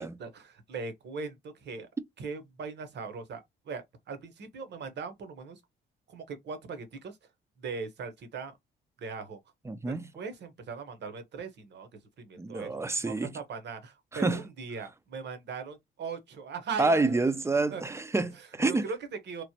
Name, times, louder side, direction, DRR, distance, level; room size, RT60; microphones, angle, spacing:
voice 1, 0.0-1.9 2.2-5.6 6.1-7.2 7.6-8.5 9.0-9.4 9.9-11.9 12.2-17.2 17.7-17.8 18.3-19.4, right 5 dB, 60° right, 0.9 m, -40 dB
voice 2, 9.7-10.0 12.4-13.4 14.1-14.4 16.8-18.8, right 3 dB, 15° right, 0.3 m, -28 dB
3.0 x 2.1 x 2.8 m
cardioid pair, 90°, 20 cm